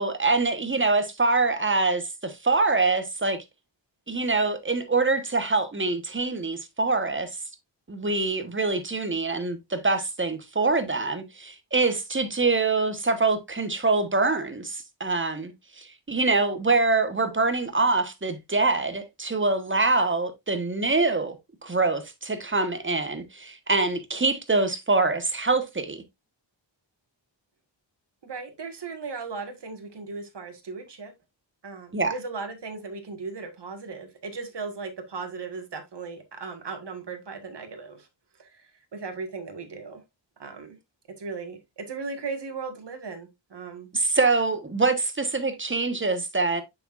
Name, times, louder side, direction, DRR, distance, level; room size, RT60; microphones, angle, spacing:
voice 1, 0.0-3.4 4.1-7.3 7.9-15.5 15.8-21.4 21.6-26.0 31.9-32.1 43.9-46.6, right 3 dB, 25° right, 1.2 m, -24 dB
voice 2, 28.2-31.1 31.6-38.1 38.4-40.0 40.4-40.8 41.2-43.9, right 4 dB, 60° right, 1.7 m, -37 dB
6.7 x 6.2 x 2.5 m
wide cardioid pair, 80°, 46 cm